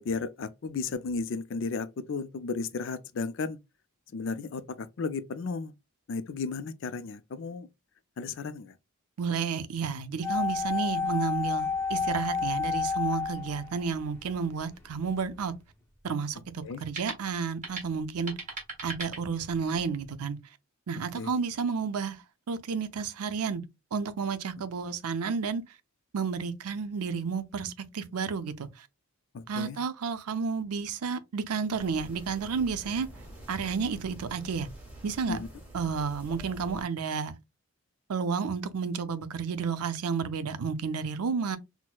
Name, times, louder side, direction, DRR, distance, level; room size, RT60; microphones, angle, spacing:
voice 1, 0.0-3.6 4.1-5.7 6.1-7.7 8.2-8.8 16.6-16.8 21.2-21.4 29.3-29.8 35.3-35.5, left 4 dB, 55° left, 0.4 m, -34 dB
voice 2, 9.2-15.5 16.0-18.3 18.8-20.4 20.9-23.6 23.9-25.6 26.1-28.9 29.5-33.1 33.5-34.7 35.0-35.4 35.7-37.3 38.1-41.6, right 5 dB, 85° right, 0.5 m, -31 dB
sound 1, 10.2-14.3 14.6-14.7, left 5 dB, 10° left, 0.8 m, -30 dB
sound 2, 14.7-19.8, right 3 dB, 35° right, 1.5 m, -43 dB
sound 3, 31.8-36.8, right 1 dB, 5° right, 1.3 m, -47 dB
6.0 x 2.1 x 2.2 m
head